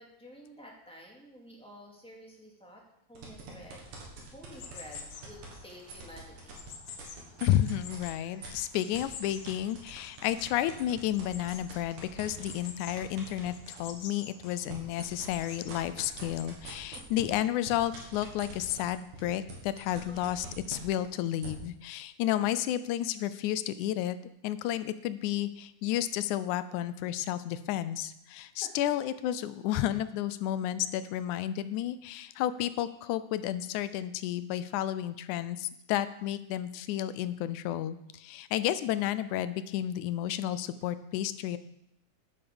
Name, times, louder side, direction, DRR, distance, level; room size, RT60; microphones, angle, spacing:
voice 1, 0.0-2.8 3.1-3.8 4.3-6.6 16.9-17.1 19.9-20.2 28.6-28.7, equal, ahead, -2 dB, 2.0 m, -51 dB
sound 1, 3.2-8.0 8.4-13.9 14.3-21.5, right 5 dB, 70° right, 3.8 m, -45 dB
sound 2, 4.5-16.5, left 6 dB, 60° left, 1.9 m, -49 dB
voice 2, 7.4-24.2 24.4-41.6, left 12 dB, 75° left, 14 dB, 1.9 m, -32 dB
9.4 x 8.4 x 7.0 m, 0.79 s
omnidirectional pair, 3.8 m